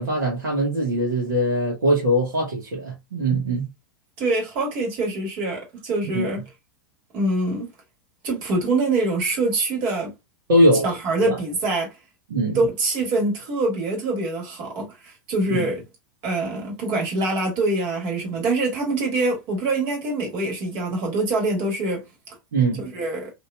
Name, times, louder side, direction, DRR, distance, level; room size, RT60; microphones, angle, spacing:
voice 1, 0.0-3.7 6.0-6.3 10.5-10.9 11.3-11.4 12.3-12.6 15.5-15.7 22.5-22.8, right 1 dB, 70° right, 1.3 m, -21 dB
voice 2, 4.2-6.4 7.1-7.7 8.2-10.1 10.8-11.9 12.5-15.8 16.2-22.0 22.8-23.3, right 2 dB, 45° right, 1.7 m, -24 dB
2.9 x 2.7 x 2.2 m
figure-of-eight pair, 90°, 11 cm